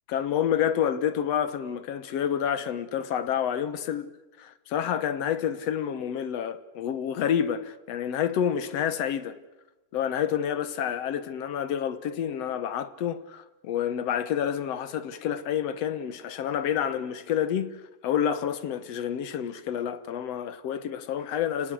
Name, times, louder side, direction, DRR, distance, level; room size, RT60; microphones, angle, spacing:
voice 1, 0.1-4.1 4.4-9.3 9.9-21.7, left 9 dB, 60° left, 1.9 m, -29 dB
29.5 x 18.5 x 7.9 m
omnidirectional pair, 3.8 m